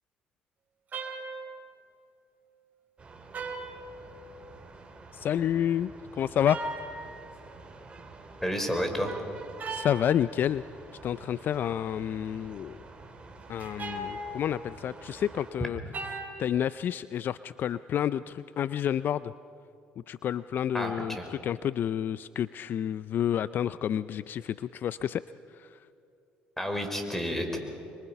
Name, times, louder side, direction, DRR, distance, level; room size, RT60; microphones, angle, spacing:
sound 1, 0.9-1.7 3.3-4.5 6.4-7.4 9.6-10.2 13.6-14.9 15.9-16.7, right 2 dB, 45° right, 3.8 m, -38 dB
sound 2, 3.0-15.5, right 3 dB, 25° right, 4.4 m, -49 dB
voice 1, 5.1-6.6 6.9-7.0 9.7-10.6 11.0-12.9 13.5-15.8 16.4-19.3 20.1-25.2 25.5-25.9, left 10 dB, 55° left, 16 dB, 0.4 m, -29 dB
voice 2, 8.4-9.1 20.7-21.2 26.6-27.6, equal, 5° left, 5 dB, 4.8 m, -30 dB
26.5 x 23.5 x 5.9 m, 2.6 s
supercardioid pair, 75°, 4 cm